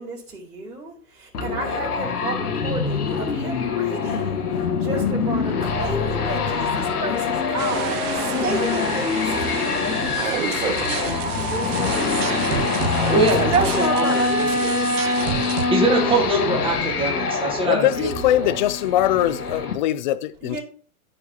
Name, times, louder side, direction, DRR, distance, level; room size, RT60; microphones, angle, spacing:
voice 1, 0.0-12.7 13.4-15.3 20.4-20.6, right 3 dB, 90° right, 3.5 m, -31 dB
sound 1, 1.3-19.7, left 4 dB, 80° left, 1.6 m, -24 dB
sound 2, 7.6-13.3, right 12 dB, 30° right, 0.7 m, -33 dB
sound 3, 10.1-15.6, right 10 dB, 55° right, 1.0 m, -30 dB
voice 2, 13.1-14.7 15.7-18.1 18.4-18.6, right 2 dB, 10° right, 2.0 m, -23 dB
voice 3, 17.6-20.6, left 12 dB, 35° left, 0.4 m, -21 dB
13.5 x 4.8 x 2.9 m
hypercardioid pair, 115°, 45 cm